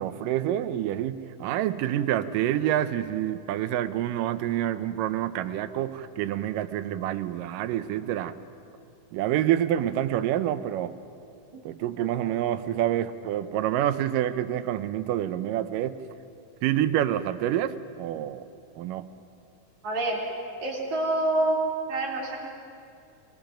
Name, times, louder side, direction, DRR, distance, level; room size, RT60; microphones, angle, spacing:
voice 1, 0.0-8.3 9.1-10.9 11.7-15.9 16.6-18.4 18.8-19.1, right 12 dB, 85° right, 12 dB, 2.4 m, -27 dB
voice 2, 19.8-20.3 20.6-21.6 21.9-22.4, right 1 dB, 60° right, -3 dB, 5.0 m, -27 dB
29.5 x 20.5 x 5.2 m, 2.5 s
omnidirectional pair, 3.8 m